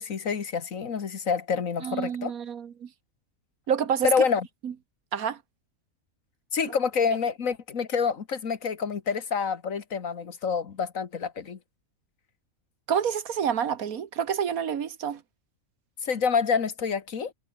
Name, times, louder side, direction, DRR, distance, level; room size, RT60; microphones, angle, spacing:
voice 1, 0.0-2.3 4.0-4.5 6.5-11.6 16.0-17.3, left 6 dB, 70° left, 1.9 m, -27 dB
voice 2, 1.8-2.9 3.7-4.1 4.6-4.7 5.1-5.4 12.9-15.2, right 8 dB, 85° right, 1.7 m, -28 dB
omnidirectional pair, 1.5 m